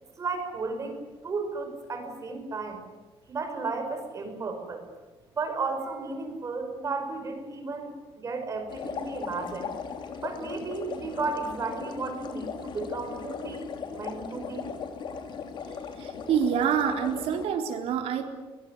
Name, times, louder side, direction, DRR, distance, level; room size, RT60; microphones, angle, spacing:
voice 1, 0.2-2.8 3.3-4.9 5.3-9.7 10.2-14.7, right 4 dB, 30° right, 5 dB, 5.5 m, -34 dB
sound 1, 8.7-17.5, left 6 dB, 55° left, 3.1 m, -38 dB
voice 2, 16.0-18.3, right 8 dB, 90° right, 4 dB, 3.9 m, -27 dB
23.0 x 21.5 x 9.8 m, 1.2 s
cardioid pair, 160°, 10 cm